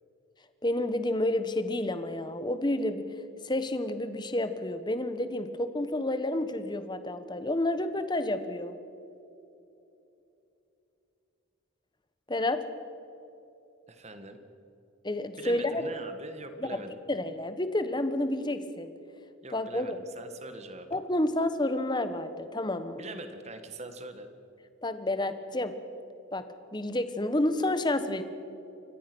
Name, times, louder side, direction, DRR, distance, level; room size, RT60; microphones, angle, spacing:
voice 1, 0.6-3.1 3.4-8.8 12.3-12.6 15.0-15.8 16.6-16.8 17.1-18.9 19.5-20.0 20.9-23.0 24.8-25.7 26.3-26.4 26.7-28.2, left 1 dB, 20° left, 10 dB, 1.1 m, -30 dB
voice 2, 13.9-14.4 15.4-17.0 19.4-21.0 23.0-24.3, right 2 dB, 30° right, 8 dB, 1.7 m, -43 dB
28.5 x 15.5 x 6.2 m, 2.9 s
head